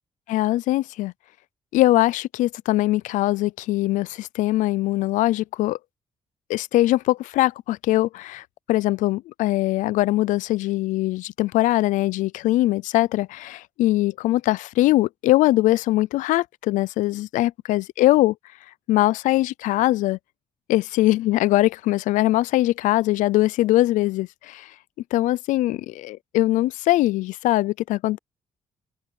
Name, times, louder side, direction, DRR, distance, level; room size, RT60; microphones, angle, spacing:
voice 1, 0.3-1.1 1.7-5.8 6.5-18.3 18.9-20.2 20.7-24.7 25.1-28.2, left 16 dB, 90° left, 0.4 m, -21 dB
cardioid pair, 85°, 13 cm